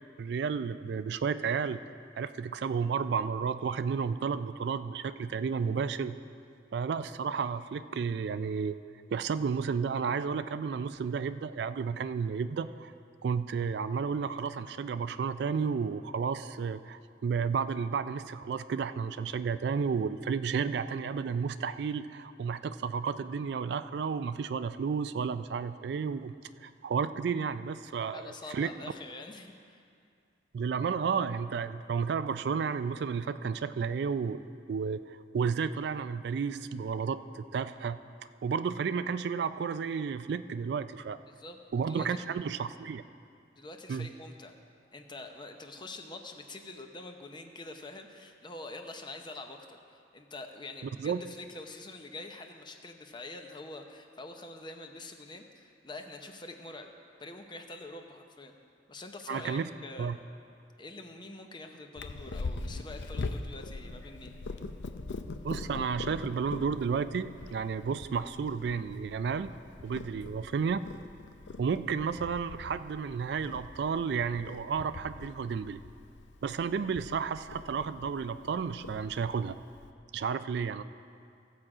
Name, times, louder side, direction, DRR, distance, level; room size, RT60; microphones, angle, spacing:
voice 1, 0.2-1.8 2.2-6.2 6.7-8.8 9.1-12.9 13.2-26.3 26.6-28.7 30.5-34.4 34.7-38.0 38.4-41.2 41.7-43.0 43.9-44.1 51.0-51.2 59.3-59.7 60.0-60.2 65.4-69.5 69.8-70.8 71.6-75.8 76.4-79.6 80.1-80.8, right 6 dB, 65° right, 12 dB, 0.3 m, -32 dB
voice 2, 28.0-29.8 41.2-41.6 41.9-42.2 43.6-44.5 44.9-56.9 57.2-58.5 58.9-60.3 60.8-64.3, left 2 dB, 25° left, 5 dB, 0.7 m, -45 dB
Purr, 61.9-79.9, left 3 dB, 75° left, 0.5 m, -43 dB
15.5 x 7.6 x 4.9 m, 2.4 s
head